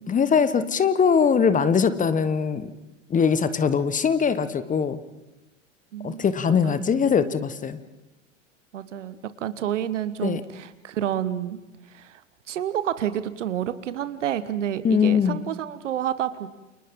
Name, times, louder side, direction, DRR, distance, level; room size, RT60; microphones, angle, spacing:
voice 1, 0.1-2.7 3.1-5.0 6.0-7.8 10.2-10.4 14.8-15.4, left 6 dB, 20° left, 13 dB, 1.3 m, -21 dB
voice 2, 5.9-6.3 6.6-6.8 8.7-11.6 11.9-12.2 12.5-16.5, right 10 dB, 70° right, 14 dB, 1.4 m, -29 dB
29.0 x 29.0 x 3.8 m, 1.0 s
figure-of-eight pair, 85°, 38 cm